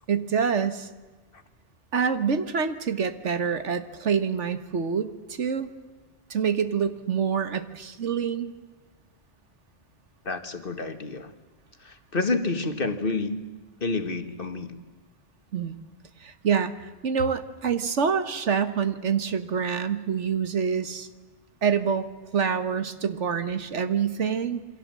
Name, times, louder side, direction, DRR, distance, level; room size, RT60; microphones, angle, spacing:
voice 1, 0.1-0.9 1.9-5.7 6.3-8.5 15.5-15.8 16.2-21.1 21.6-22.1 22.3-24.6, right 6 dB, 85° right, 11 dB, 1.7 m, -26 dB
voice 2, 10.3-11.3 11.8-13.5 13.8-14.8, left 3 dB, 50° left, 8 dB, 1.8 m, -29 dB
28.0 x 23.5 x 7.6 m, 1.3 s
omnidirectional pair, 1.2 m